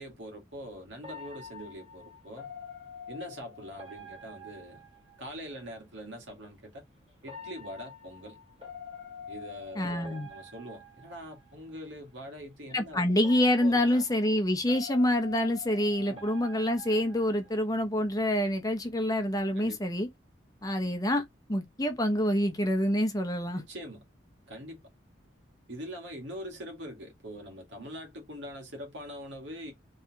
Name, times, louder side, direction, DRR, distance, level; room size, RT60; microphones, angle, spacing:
voice 1, 0.0-2.5 3.1-4.8 5.2-6.8 7.2-8.4 9.3-13.0 13.4-14.0 16.1-16.3 19.5-19.8 23.6-24.0 24.5-24.8 25.7-29.7, equal, 70° right, 1.9 m, -43 dB
sound 1, 1.0-5.6 7.2-11.8 13.2-17.8, left 4 dB, 30° right, 2.4 m, -47 dB
voice 2, 9.8-10.3 12.7-20.1 20.6-21.2 21.5-23.6, left 1 dB, 20° left, 0.8 m, -27 dB
4.2 x 3.3 x 2.9 m
head